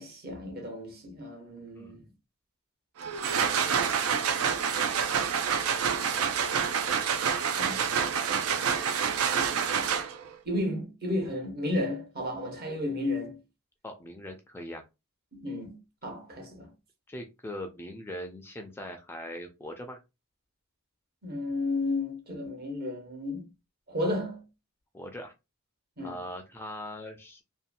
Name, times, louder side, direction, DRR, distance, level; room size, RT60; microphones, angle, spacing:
voice 1, 0.0-2.1 7.6-8.4 10.5-13.4 15.3-16.7 21.2-23.4 23.9-24.4 26.0-26.2, left 1 dB, 50° right, 0.9 m, -33 dB
voice 2, 1.7-2.1 13.8-14.8 17.1-20.0 24.9-25.3 26.0-27.4, left 1 dB, 10° left, 0.3 m, -41 dB
sound 1, 3.0-10.3, right 7 dB, 80° right, 0.4 m, -27 dB
2.7 x 2.2 x 2.5 m
head